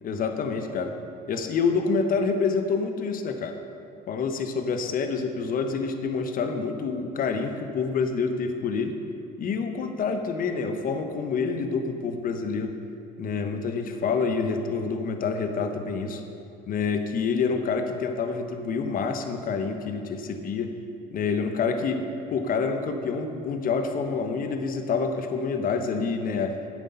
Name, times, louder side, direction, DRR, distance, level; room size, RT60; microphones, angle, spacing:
voice 1, 0.0-1.0 1.3-3.6 4.1-9.0 9.4-12.7 13.2-16.2 16.7-20.7 21.1-26.6, left 5 dB, 50° left, 7 dB, 1.1 m, -27 dB
10.5 x 8.2 x 5.6 m, 2.7 s
supercardioid pair, 80°, 18 cm